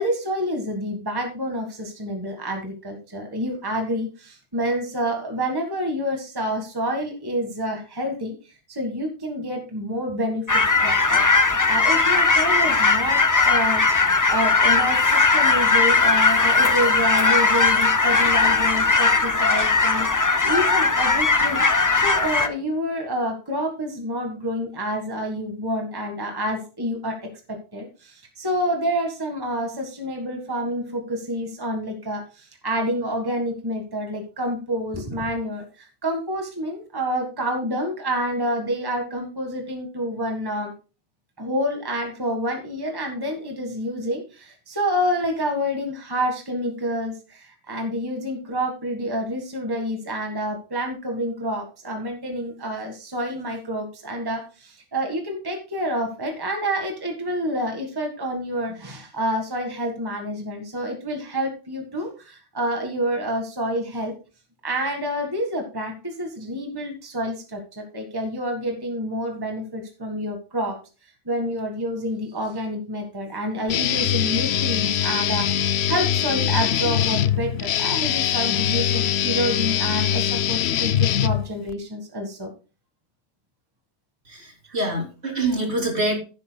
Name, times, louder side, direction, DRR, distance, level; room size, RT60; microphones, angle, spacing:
voice 1, 0.0-11.2 11.5-13.8 14.3-21.6 21.9-40.7 41.4-64.1 64.6-70.8 71.2-82.5 84.7-84.9, equal, 20° right, 2 dB, 1.6 m, -28 dB
sound 1, 10.5-22.5, left 3 dB, 25° left, 0.4 m, -19 dB
Guitar, 73.7-81.7, left 10 dB, 65° left, 0.8 m, -22 dB
voice 2, 84.3-86.2, right 2 dB, 55° right, 0 dB, 3.4 m, -25 dB
15.5 x 8.3 x 2.2 m, 0.34 s
omnidirectional pair, 1.3 m